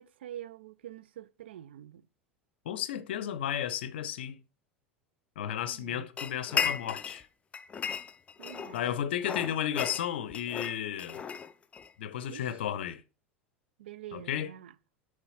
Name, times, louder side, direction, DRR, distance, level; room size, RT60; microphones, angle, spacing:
voice 1, 0.0-2.0 5.7-6.1 8.4-8.9 12.3-12.4 13.8-14.7, right 12 dB, 65° right, 0.3 m, -46 dB
voice 2, 2.7-4.4 5.4-7.3 8.7-11.2 12.0-13.0 14.1-14.5, left 10 dB, 60° left, 0.6 m, -33 dB
sound 1, 6.2-7.2 7.5-8.8 9.2-11.9, left 7 dB, 20° left, 0.5 m, -35 dB
6.9 x 3.3 x 5.5 m
figure-of-eight pair, 80°, 6 cm